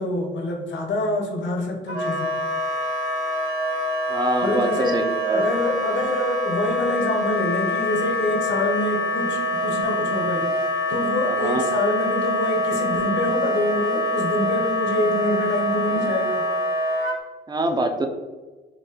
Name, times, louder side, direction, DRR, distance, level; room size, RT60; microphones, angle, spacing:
voice 1, 0.0-2.3 4.4-16.5, left 1 dB, 70° left, 2 dB, 0.8 m, -26 dB
Wind instrument woodwind instrument, 1.9-17.2, left 1 dB, 75° right, 1.4 m, -25 dB
voice 2, 4.1-5.4 11.2-11.7 17.5-18.1, right 2 dB, 20° right, 5 dB, 0.5 m, -24 dB
3.9 x 2.6 x 2.8 m, 1.3 s
cardioid pair, 90°, 20 cm